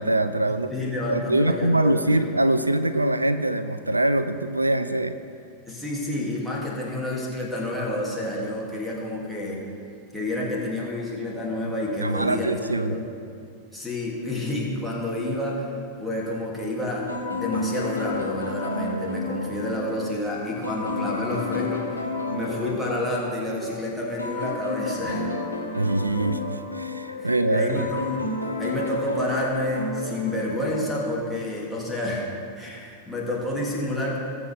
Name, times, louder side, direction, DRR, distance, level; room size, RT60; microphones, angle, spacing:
voice 1, 0.0-0.7 1.1-5.1 12.0-13.0 25.7-27.9, right 1 dB, 85° right, 12 dB, 0.4 m, -23 dB
voice 2, 0.7-2.2 5.7-9.6 10.1-12.5 12.8-13.0 13.7-15.7 16.0-25.3 27.2-28.2 28.6-32.3 32.6-34.2, left 1 dB, 5° left, -5 dB, 2.6 m, -29 dB
sound 1, 17.1-31.3, left 3 dB, 85° left, 1.2 m, -32 dB
20.5 x 7.1 x 3.5 m, 2.4 s
figure-of-eight pair, 90°, 0 cm